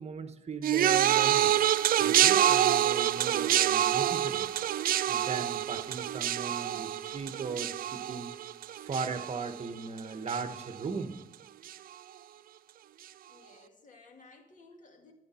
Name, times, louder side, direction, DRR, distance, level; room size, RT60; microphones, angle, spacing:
voice 1, 0.0-1.5 2.0-4.5 5.1-8.3 8.8-11.1, right 4 dB, 50° right, 9 dB, 1.1 m, -38 dB
sound 1, 0.6-10.0 10.3-10.8 11.7-11.8, right 11 dB, 85° right, 0.4 m, -27 dB
voice 2, 13.2-15.1, left 3 dB, 60° left, 3 dB, 2.2 m, -56 dB
13.0 x 9.8 x 4.3 m, 0.92 s
wide cardioid pair, 115°, 14 cm